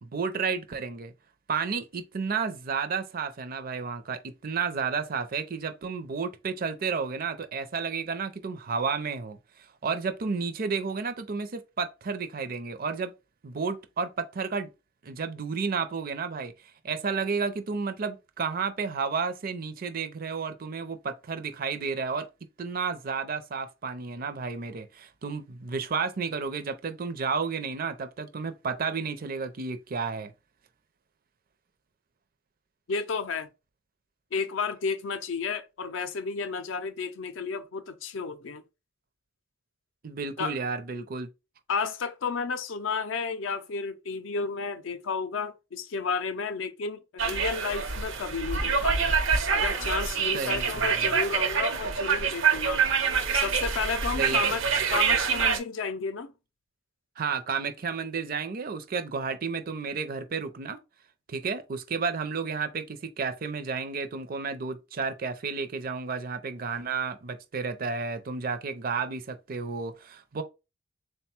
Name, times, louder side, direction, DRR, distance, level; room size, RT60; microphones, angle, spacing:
voice 1, 0.0-1.1 1.5-9.4 9.8-13.1 13.4-14.7 15.0-16.5 16.8-22.3 22.6-30.3 40.0-41.3 50.3-51.1 54.2-54.4 57.2-60.8 61.3-70.4, right 5 dB, 45° right, 0.5 m, -32 dB
voice 2, 32.9-33.5 34.3-38.6 40.4-40.6 41.7-49.1 49.5-52.8 53.3-54.6 54.9-56.3, left 5 dB, 75° left, 0.5 m, -32 dB
sound 1, 47.2-55.6, right 6 dB, 80° right, 0.7 m, -26 dB
3.8 x 2.2 x 4.3 m
head